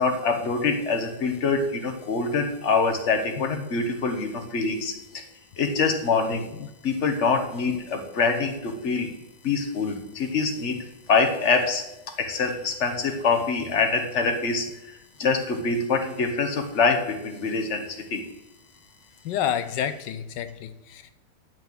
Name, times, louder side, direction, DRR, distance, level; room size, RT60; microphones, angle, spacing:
voice 1, 0.0-5.2 5.6-6.5 6.8-9.1 9.4-10.8 11.1-11.8 12.2-14.7 15.2-18.2, left 4 dB, 45° left, 5 dB, 1.5 m, -25 dB
voice 2, 3.4-3.7 6.6-6.7 19.2-21.1, left 9 dB, 85° left, 11 dB, 1.3 m, -30 dB
11.5 x 4.6 x 8.1 m, 0.94 s
omnidirectional pair, 1.9 m